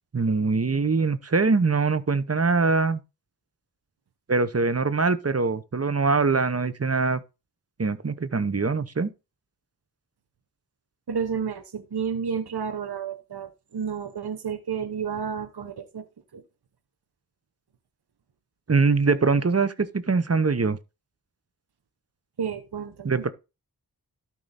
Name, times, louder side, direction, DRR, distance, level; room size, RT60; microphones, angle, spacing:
voice 1, 0.1-3.0 4.3-7.2 7.8-9.1 18.7-20.8 23.0-23.3, right 4 dB, 40° right, 0.9 m, -23 dB
voice 2, 11.1-16.1 16.3-16.4 22.4-23.2, right 7 dB, 85° right, 0.9 m, -31 dB
12.5 x 4.7 x 4.1 m
wide cardioid pair, 55°, 38 cm